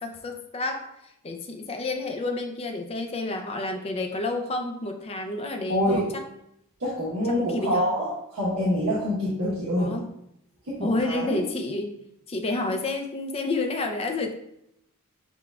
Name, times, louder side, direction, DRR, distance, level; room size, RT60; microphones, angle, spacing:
voice 1, 0.0-6.2 7.3-7.9 9.8-10.1 10.8-11.9 12.3-14.3, left 2 dB, 25° left, 4 dB, 0.4 m, -30 dB
voice 2, 6.8-9.9 10.7-11.4, equal, 80° right, -8 dB, 1.0 m, -26 dB
6.7 x 2.3 x 2.3 m, 0.79 s
head